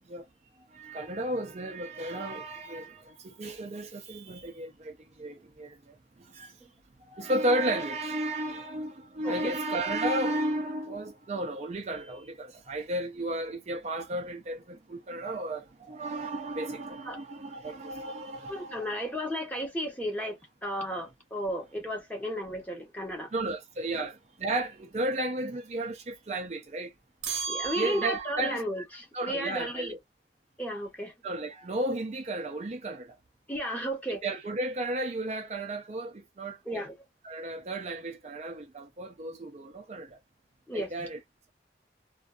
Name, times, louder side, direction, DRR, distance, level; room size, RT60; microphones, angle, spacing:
voice 1, 0.7-6.0 6.3-6.5 7.1-18.9 23.3-26.9 27.8-28.6 29.1-30.0 31.2-33.2 34.2-36.6 37.2-40.2 40.7-41.2, right 1 dB, 40° right, 0.4 m, -33 dB
voice 2, 9.2-9.6 17.1-17.2 18.5-23.3 23.9-24.1 27.5-29.9 30.6-31.1 33.5-34.2 36.7-36.9 40.7-40.9, equal, 10° left, 0.8 m, -34 dB
sound 1, 27.2-28.6, right 6 dB, 75° right, 0.7 m, -34 dB
2.5 x 2.1 x 2.3 m
head